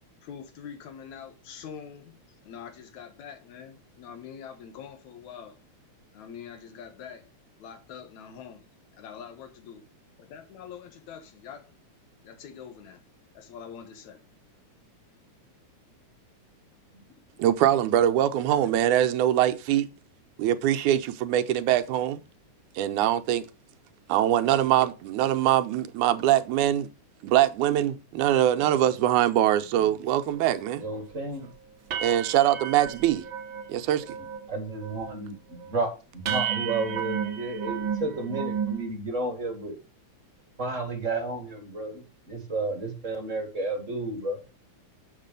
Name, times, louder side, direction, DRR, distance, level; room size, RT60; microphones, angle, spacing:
voice 1, 0.2-2.2 2.4-5.6 6.1-7.3 7.6-8.7 8.9-9.8 10.2-11.7 12.2-13.0 13.3-14.2, left 7 dB, 75° left, 2.4 m, -44 dB
voice 2, 17.4-19.9 20.4-22.2 22.8-23.5 24.1-26.9 27.2-30.8 32.0-33.3 33.7-34.2, right 12 dB, 85° right, 2.1 m, -23 dB
sound 1, 30.4-30.5 30.9-31.1 31.4-31.5 31.9-33.7 34.0-34.5 34.7-35.2 35.6-35.7 36.3-38.8, right 8 dB, 60° right, 1.3 m, -32 dB
voice 3, 30.8-31.5 34.5-39.8 40.6-44.4, right 2 dB, 30° right, 1.7 m, -32 dB
7.4 x 6.2 x 5.2 m
omnidirectional pair, 3.5 m